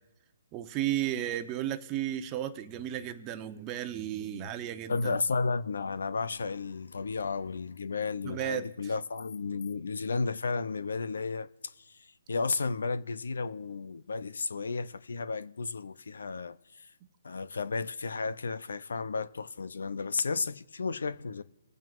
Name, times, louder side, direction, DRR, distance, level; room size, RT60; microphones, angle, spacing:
voice 1, 0.5-5.2 8.2-8.7, right 12 dB, 25° right, 0.9 m, -34 dB
voice 2, 4.9-16.9 17.2-21.4, left 4 dB, 75° left, 0.6 m, -33 dB
25.5 x 9.1 x 2.5 m
hypercardioid pair, 150°, 0 cm